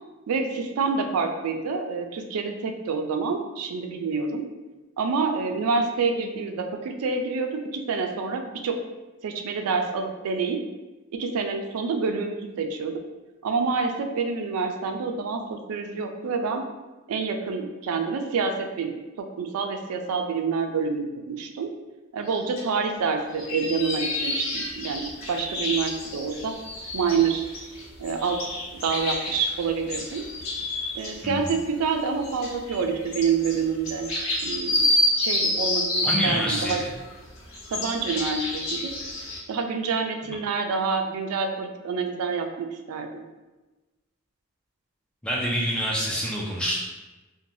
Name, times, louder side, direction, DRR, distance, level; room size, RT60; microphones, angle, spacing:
voice 1, 0.3-4.5 5.0-8.8 9.2-10.6 11.2-13.0 13.4-16.6 17.1-21.8 22.1-26.5 26.9-27.5 28.0-30.3 30.9-34.1 34.4-34.9 35.2-36.8 37.7-38.9 39.5-43.2, right 5 dB, 85° right, 5 dB, 0.3 m, -27 dB
sound 1, 22.6-22.7 23.2-31.1 31.5-31.6 32.0-36.2 36.7-39.4, left 1 dB, 65° left, 0.7 m, -28 dB
voice 2, 36.0-36.9 45.2-46.8, equal, 5° left, -4 dB, 0.4 m, -26 dB
3.1 x 2.1 x 2.6 m, 1.1 s
head